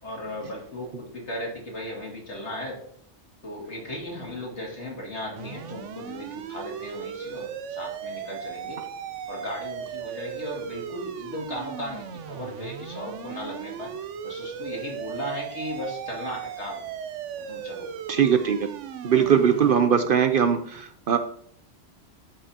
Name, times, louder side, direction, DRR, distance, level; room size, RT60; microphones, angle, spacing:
voice 1, 0.0-2.8 3.4-8.8 9.3-13.9 14.2-16.9 17.4-17.9, equal, 70° left, 2.7 m, -36 dB
sound 1, 5.4-19.8, right 8 dB, 85° right, 1.0 m, -37 dB
voice 2, 18.1-18.7 19.0-21.2, right 7 dB, 60° right, 0.7 m, -21 dB
13.0 x 5.6 x 2.8 m
omnidirectional pair, 1.2 m